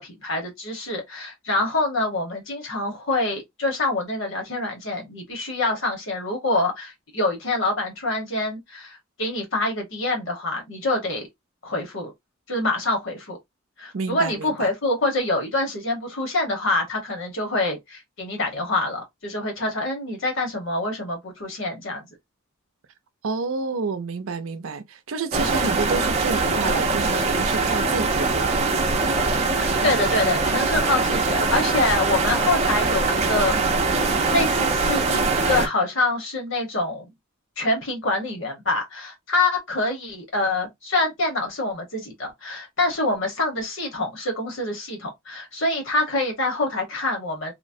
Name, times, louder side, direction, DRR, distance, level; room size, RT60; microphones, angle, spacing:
voice 1, 0.0-11.3 11.6-12.1 12.5-13.4 13.8-22.1 29.6-35.2 35.5-37.0 37.6-47.5, left 2 dB, 70° left, 1.1 m, -26 dB
voice 2, 13.9-14.7 23.2-28.6, right 4 dB, 85° right, 0.5 m, -29 dB
sound 1, 25.3-35.7, right 3 dB, 35° right, 0.5 m, -22 dB
3.0 x 2.1 x 2.5 m
head